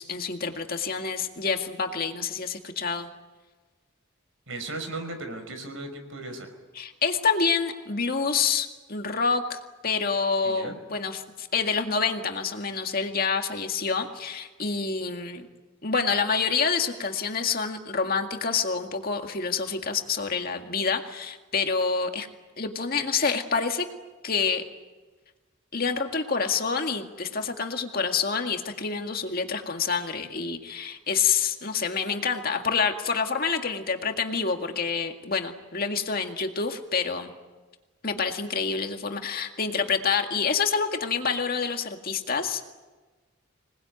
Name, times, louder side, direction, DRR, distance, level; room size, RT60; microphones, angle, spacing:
voice 1, 0.0-3.1 6.8-15.5 15.8-22.3 22.6-23.9 24.2-24.6 25.7-37.3 38.0-42.6, left 5 dB, 45° left, 4 dB, 2.0 m, -27 dB
voice 2, 4.5-6.5 10.4-10.8, right 2 dB, 70° right, 6 dB, 5.3 m, -36 dB
26.5 x 20.0 x 9.4 m, 1.3 s
head